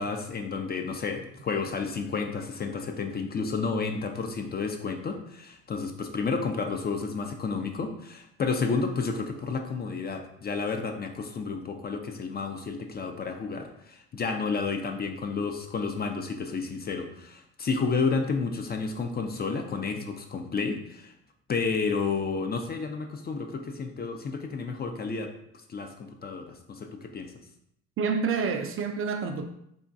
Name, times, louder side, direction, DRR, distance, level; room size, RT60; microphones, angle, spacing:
voice 1, 0.0-21.1 21.5-25.3 25.7-27.3, left 4 dB, 30° left, 0.4 m, -31 dB
voice 2, 28.0-29.4, right 5 dB, 45° right, 0.4 m, -28 dB
3.7 x 2.2 x 2.5 m
supercardioid pair, 70°, 32 cm